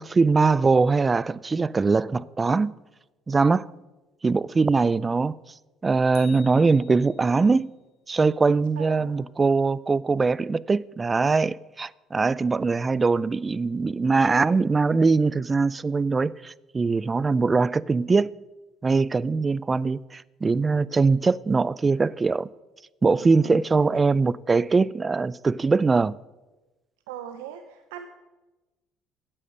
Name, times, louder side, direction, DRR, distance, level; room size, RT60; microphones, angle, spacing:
voice 1, 0.0-2.7 3.3-3.7 4.2-5.4 5.8-7.7 8.1-18.3 18.8-22.5 23.0-26.1, right 4 dB, 25° right, 0.3 m, -22 dB
sound 1, 6.1-7.5, left 10 dB, 70° left, 1.5 m, -49 dB
voice 2, 8.8-9.1 23.1-23.5 23.9-24.0 27.1-28.1, right 10 dB, 90° right, 0.6 m, -40 dB
8.8 x 8.3 x 6.4 m
supercardioid pair, 75°, 0 cm